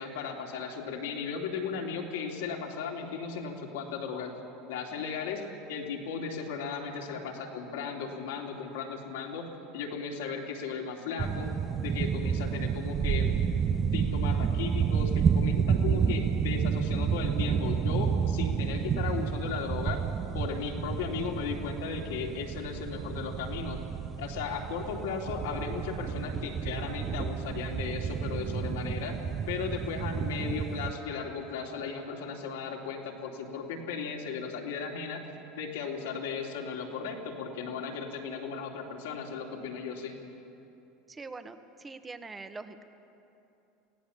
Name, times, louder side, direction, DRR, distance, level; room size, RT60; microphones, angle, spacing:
voice 1, 0.0-4.3 4.7-5.4 5.7-11.5 11.8-13.4 13.9-20.0 20.3-23.8 24.2-29.2 29.5-35.2 35.6-40.2, left 5 dB, 75° left, 0 dB, 3.1 m, -36 dB
sound 1, 11.2-30.9, right 7 dB, 35° right, 0.9 m, -30 dB
voice 2, 41.1-42.8, right 3 dB, 20° right, 9 dB, 1.5 m, -43 dB
25.5 x 17.0 x 7.2 m, 2.8 s
hypercardioid pair, 85°, 0 cm